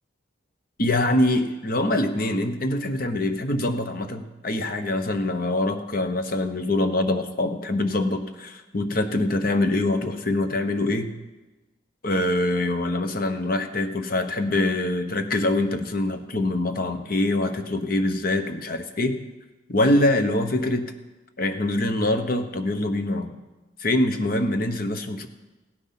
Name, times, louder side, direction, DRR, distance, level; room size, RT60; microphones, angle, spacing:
voice 1, 0.8-11.1 12.0-19.2 19.7-20.9 21.4-23.3 23.8-25.3, left 1 dB, 50° left, 8 dB, 1.1 m, -24 dB
16.5 x 9.4 x 5.9 m, 1.1 s
head